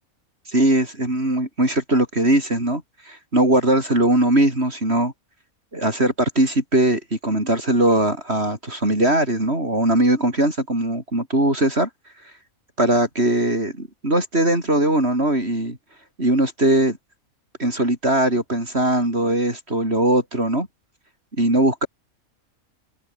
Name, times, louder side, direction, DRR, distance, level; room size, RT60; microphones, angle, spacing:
voice 1, 0.5-5.1 5.7-11.9 12.8-15.8 16.2-17.0 17.6-20.7 21.4-21.9, right 1 dB, 45° right, 6.8 m, -20 dB
open air
omnidirectional pair, 1.5 m